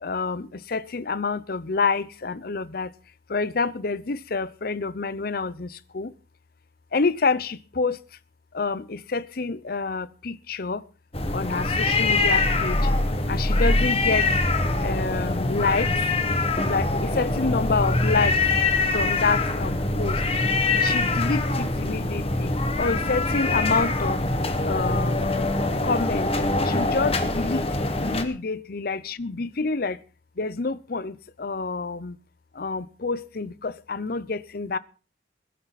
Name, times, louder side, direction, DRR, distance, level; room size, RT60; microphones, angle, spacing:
voice 1, 0.0-2.9 3.3-6.1 6.9-8.0 8.5-10.8 11.3-12.8 13.3-14.3 14.8-15.9 16.6-18.4 18.9-20.2 20.8-22.5 22.8-24.2 24.6-25.4 25.8-26.3 26.7-27.7 28.0-30.0 30.4-32.2 32.6-34.8, left 4 dB, 50° left, 0.7 m, -27 dB
sound 1, 11.1-28.2, left 2 dB, 30° left, 1.6 m, -24 dB
20.5 x 11.5 x 4.2 m
head